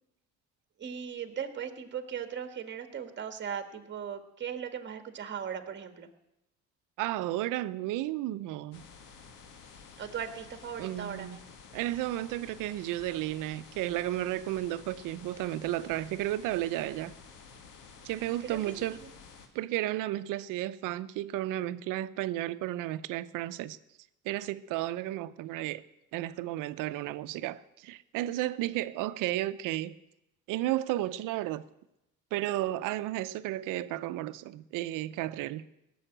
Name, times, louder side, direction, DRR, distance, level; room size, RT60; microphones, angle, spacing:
voice 1, 0.8-6.1 10.0-11.4 18.4-18.7 19.0-19.1, right 8 dB, 35° right, 1.7 m, -38 dB
voice 2, 7.0-8.8 10.8-11.4 11.7-17.1 18.0-19.0 19.5-23.8 24.2-25.8 26.1-30.0 30.5-31.6 32.3-35.6, right 15 dB, 85° right, 0.7 m, -33 dB
sound 1, 8.7-19.5, left 5 dB, 85° left, 2.0 m, -52 dB
17.5 x 7.1 x 9.0 m
cardioid pair, 120°, 31 cm